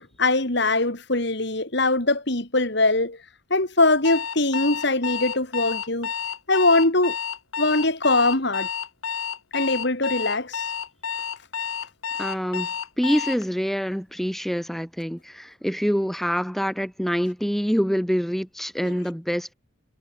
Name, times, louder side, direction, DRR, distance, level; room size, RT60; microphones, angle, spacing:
voice 1, 0.2-3.2 3.5-6.1 6.5-7.2 7.6-8.7 9.5-10.6 18.8-18.9, left 2 dB, 55° left, 2.9 m, -22 dB
Alarm, 4.0-13.4, left 7 dB, 80° left, 1.4 m, -30 dB
voice 2, 12.2-19.5, equal, ahead, 4.7 m, -26 dB
head